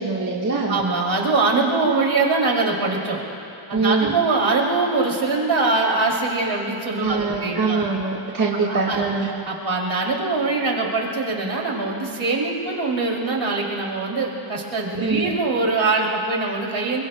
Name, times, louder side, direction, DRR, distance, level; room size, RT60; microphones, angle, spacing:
voice 1, 0.0-0.8 3.7-4.1 7.0-9.3 15.0-15.4, right 4 dB, 35° right, -4 dB, 1.6 m, -23 dB
voice 2, 0.7-3.2 3.7-7.8 8.6-17.0, right 3 dB, 65° right, -2 dB, 2.9 m, -23 dB
27.5 x 23.0 x 2.2 m, 2.8 s
wide cardioid pair, 115°, 50 cm